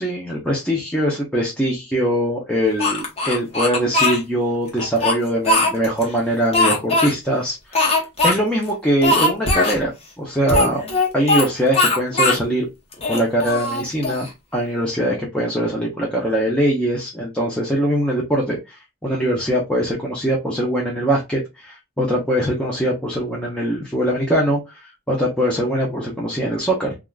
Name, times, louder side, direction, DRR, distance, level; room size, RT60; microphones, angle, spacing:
voice 1, 0.0-9.9 10.2-10.8 11.1-12.7 13.1-14.3 14.5-26.9, equal, 5° left, -3 dB, 0.6 m, -22 dB
Speech, 2.8-4.2 4.8-6.0 6.5-7.1 7.7-8.4 8.6-8.7 9.0-9.8 10.5-11.5 11.7-12.4 12.9-14.3, left 2 dB, 30° left, 0.9 m, -19 dB
3.4 x 2.4 x 2.3 m, 0.24 s
head